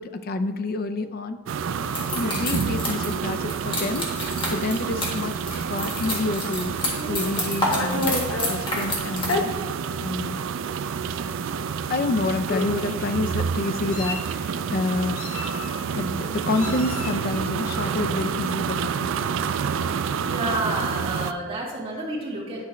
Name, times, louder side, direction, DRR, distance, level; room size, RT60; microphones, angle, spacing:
voice 1, 0.0-1.4 2.2-5.4 5.7-6.7 7.1-8.1 8.5-9.5 10.0-10.4 11.9-15.6 15.9-19.3, left 2 dB, 45° left, 9 dB, 0.4 m, -28 dB
sound 1, 1.5-21.3, right 6 dB, 65° right, 0.3 m, -29 dB
sound 2, 1.9-9.4, left 1 dB, 25° left, 1.6 m, -30 dB
Meow, 6.9-8.6 9.2-9.4 10.3-10.4 10.8-11.0 12.0-12.1 12.5-13.0 13.6-14.4 15.2-15.9 16.5-17.2, left 2 dB, 80° left, 0.8 m, -30 dB
voice 2, 20.3-22.6, right 2 dB, 25° right, -6 dB, 1.8 m, -29 dB
10.5 x 5.2 x 3.1 m, 1.3 s
head